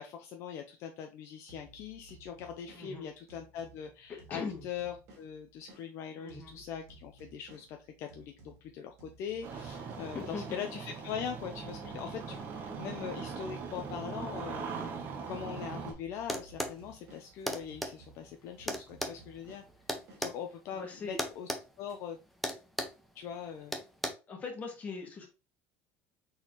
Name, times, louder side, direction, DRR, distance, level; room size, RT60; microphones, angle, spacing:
voice 1, 0.0-14.9 15.3-19.6 20.2-21.5 21.8-22.2 23.1-23.8, left 8 dB, 55° left, 4 dB, 0.5 m, -42 dB
sound 1, 1.5-5.9 6.3-10.7 11.1-15.5 15.9-20.3, right 3 dB, 55° right, 2.2 m, -58 dB
voice 2, 2.7-3.1 4.1-4.6 6.2-6.6 10.1-10.6 20.7-21.2 24.3-25.3, left 4 dB, 25° left, 2 dB, 1.4 m, -41 dB
Engine starting, 9.4-15.9, right 5 dB, 35° right, 0.8 m, -40 dB
sound 2, 16.3-16.8 17.5-17.9 18.7-20.4 21.2-21.6 21.9-22.1 22.4-23.0 23.7-24.1, equal, ahead, 0.6 m, -35 dB
4.1 x 3.9 x 3.0 m, 0.30 s
cardioid pair, 145°, 6 cm